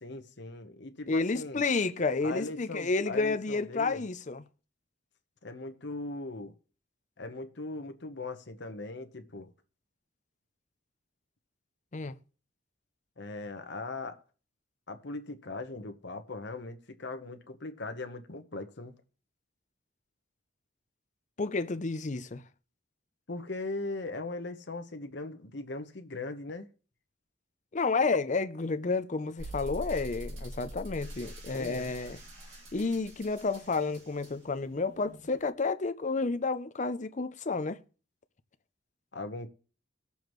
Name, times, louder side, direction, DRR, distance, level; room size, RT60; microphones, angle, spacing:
voice 1, 0.0-1.6 2.2-4.0 5.4-6.5 7.2-9.5 13.2-14.2 14.9-18.9 23.3-26.7 31.5-31.9 39.1-39.5, left 2 dB, 60° left, 1.1 m, -39 dB
voice 2, 1.1-4.4 11.9-12.2 21.4-22.4 27.7-32.2 32.7-37.8, left 3 dB, 40° left, 0.6 m, -30 dB
sound 1, 29.4-35.5, equal, 85° right, 2.3 m, -44 dB
19.5 x 7.0 x 3.1 m
head